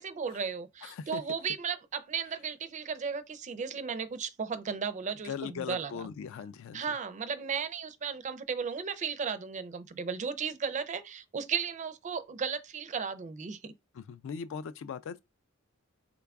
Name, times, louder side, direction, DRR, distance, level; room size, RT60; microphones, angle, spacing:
voice 1, 0.0-6.1 6.7-13.7, right 6 dB, 35° right, 0.4 m, -35 dB
voice 2, 0.8-1.2 5.2-6.8 13.9-15.2, left 7 dB, 65° left, 0.3 m, -39 dB
3.8 x 2.3 x 3.4 m
head